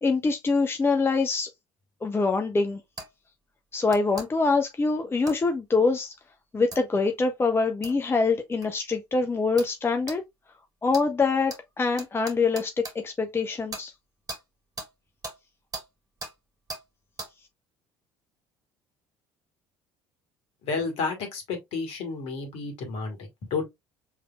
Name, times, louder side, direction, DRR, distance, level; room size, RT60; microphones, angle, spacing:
voice 1, 0.0-1.5 2.0-2.8 3.7-6.1 6.5-10.2 10.8-13.9, left 4 dB, 20° left, 0.7 m, -24 dB
sound 1, 3.0-3.1 3.9-4.3 5.3-5.4 6.7-6.8 7.8-8.0 8.6-8.7 9.6-9.7 10.1-10.2 10.9-11.1 11.5-11.6 12.0-13.0 13.7-13.9 14.3-14.4 14.8-14.9 15.2-15.4 15.7-15.9 16.2-16.3 16.7-16.8 17.2-17.3, right 2 dB, 30° right, 2.3 m, -38 dB
voice 2, 20.6-23.6, left 4 dB, 55° left, 1.7 m, -31 dB
5.7 x 3.4 x 2.3 m
figure-of-eight pair, 55°, 13 cm